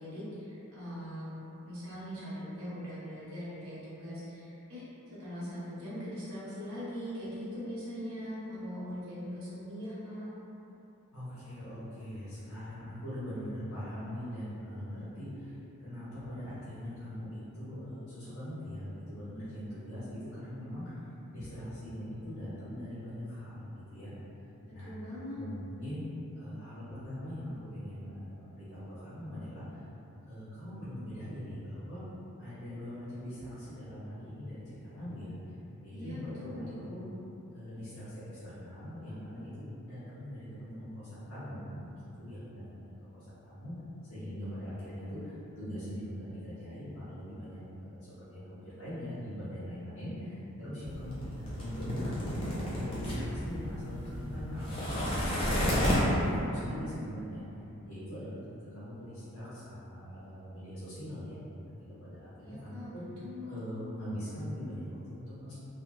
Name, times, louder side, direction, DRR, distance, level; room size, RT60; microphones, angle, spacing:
voice 1, 0.0-10.3 24.6-25.5 35.9-36.9 62.4-63.6, equal, 70° right, -11 dB, 1.0 m, -41 dB
voice 2, 11.1-21.0 21.3-24.1 24.7-24.9 25.3-26.0 26.3-29.8 30.2-32.0 32.4-35.5 35.8-37.0 37.5-43.7 44.1-52.3 52.7-57.4 57.8-61.4 61.8-63.0 63.5-65.5, equal, 75° left, -14 dB, 0.9 m, -41 dB
sound 1, 50.8-56.4, equal, 25° left, 0.5 m, -32 dB
3.5 x 2.0 x 2.5 m, 3.0 s
head